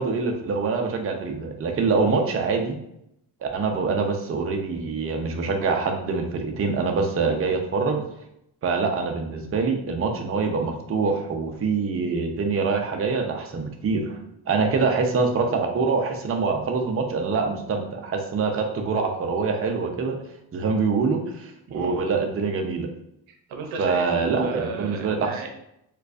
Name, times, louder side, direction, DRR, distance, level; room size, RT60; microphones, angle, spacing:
voice 1, 0.0-2.8 3.4-8.0 8.6-14.2 14.5-20.2 20.5-22.9 23.8-25.3, right 4 dB, 30° right, 3 dB, 0.6 m, -25 dB
voice 2, 2.0-2.3 14.6-14.8 21.7-22.0 23.3-25.5, right 3 dB, 80° right, 4 dB, 0.7 m, -35 dB
4.4 x 2.4 x 2.5 m, 0.78 s
cardioid pair, 80°, 48 cm